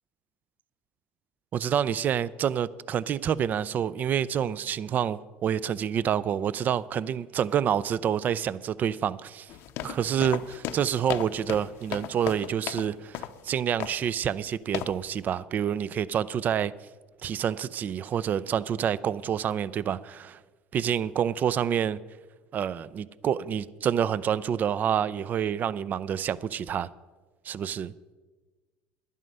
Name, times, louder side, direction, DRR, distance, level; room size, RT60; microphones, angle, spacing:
voice 1, 1.5-9.5 9.8-16.7 17.2-20.4 20.7-22.0 22.5-26.9 27.5-27.9, right 9 dB, 40° right, 0.4 m, -28 dB
sound 1, 9.5-12.9 13.1-13.4 13.8-14.1 14.7-15.0, left 12 dB, 70° left, 0.7 m, -35 dB
11.0 x 11.0 x 5.4 m
supercardioid pair, 100°, 4 cm